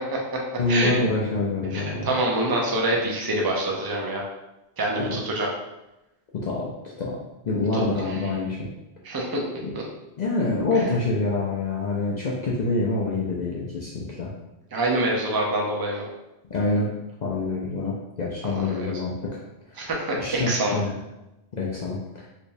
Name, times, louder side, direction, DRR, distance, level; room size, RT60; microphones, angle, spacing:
voice 1, 0.6-2.1 5.0-5.2 6.3-6.7 7.0-8.7 9.6-9.7 10.2-14.3 16.5-16.9 17.2-19.4 19.7-19.9 20.2-21.0 21.5-22.3, left 2 dB, 55° left, -4 dB, 0.5 m, -26 dB
voice 2, 1.7-4.2 4.8-5.5 7.7-7.8 9.0-9.4 9.7-9.8 10.7-10.8 14.7-16.0 18.4-18.9 19.8-20.8, right 1 dB, 30° right, -1 dB, 0.4 m, -26 dB
3.4 x 3.0 x 2.6 m, 0.94 s
omnidirectional pair, 1.2 m